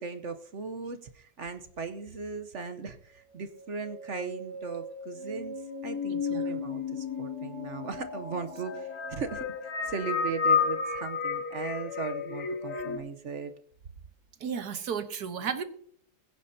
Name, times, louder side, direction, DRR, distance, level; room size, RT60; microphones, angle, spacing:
voice 1, 0.0-5.6 5.8-13.5, right 5 dB, 50° right, 7 dB, 1.1 m, -38 dB
sound 1, 3.3-13.0, left 5 dB, 65° left, 2.0 m, -33 dB
voice 2, 6.1-6.6 12.7-12.8 14.4-15.6, right 7 dB, 70° right, 9 dB, 1.6 m, -34 dB
21.5 x 10.0 x 2.8 m, 0.62 s
omnidirectional pair, 1.8 m